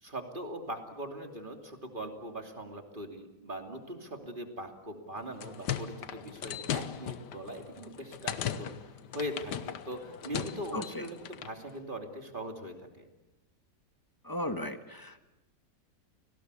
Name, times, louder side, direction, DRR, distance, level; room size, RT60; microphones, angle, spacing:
voice 1, 0.0-13.0, equal, 30° right, 4 dB, 3.0 m, -41 dB
sound 1, 5.2-11.6, left 9 dB, 75° left, 1.6 m, -38 dB
voice 2, 14.2-15.2, left 1 dB, 15° left, 8 dB, 1.5 m, -35 dB
30.0 x 18.5 x 8.3 m, 1.0 s
omnidirectional pair, 1.8 m